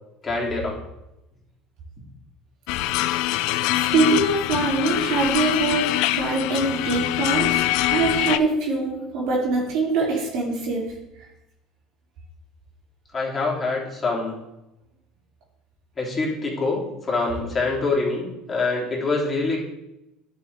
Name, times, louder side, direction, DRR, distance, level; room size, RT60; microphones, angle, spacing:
voice 1, 0.2-0.8 13.1-14.4 16.0-16.8 17.1-19.6, left 3 dB, 25° left, -4 dB, 3.1 m, -25 dB
sound 1, 2.7-8.4, left 15 dB, 70° left, 0.3 m, -24 dB
voice 2, 3.9-7.6 7.9-10.9, right 3 dB, 70° right, -4 dB, 3.0 m, -23 dB
10.5 x 5.5 x 3.4 m, 0.92 s
hypercardioid pair, 80°, 0 cm